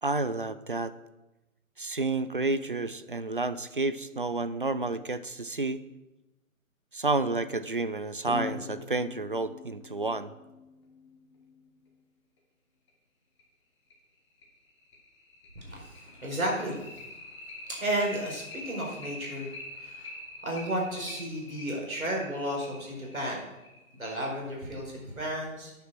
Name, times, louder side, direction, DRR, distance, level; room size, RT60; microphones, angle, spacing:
voice 1, 0.0-0.9 1.8-5.8 6.9-10.3, right 3 dB, 40° right, 14 dB, 0.4 m, -30 dB
sound 1, 8.3-11.4 12.9-13.0 13.4-13.5 13.9-14.0 14.4-24.5, left 3 dB, 20° left, 1.5 m, -44 dB
voice 2, 15.5-17.1 17.7-20.1 20.4-23.4 24.0-25.8, right 1 dB, 75° right, -2 dB, 4.5 m, -33 dB
9.4 x 7.1 x 6.0 m, 1.0 s
figure-of-eight pair, 150°, 42 cm